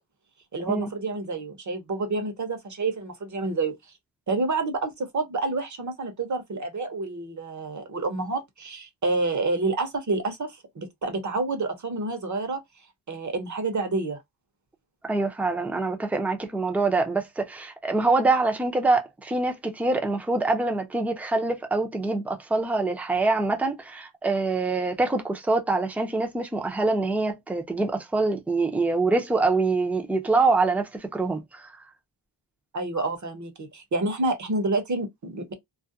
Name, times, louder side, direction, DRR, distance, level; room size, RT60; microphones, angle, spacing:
voice 1, 0.5-3.7 4.3-12.6 13.1-14.2 32.7-35.5, right 3 dB, 40° right, 0.8 m, -28 dB
voice 2, 15.0-31.7, right 3 dB, 5° right, 0.5 m, -25 dB
2.4 x 2.1 x 2.5 m
cardioid pair, 90°, 45 cm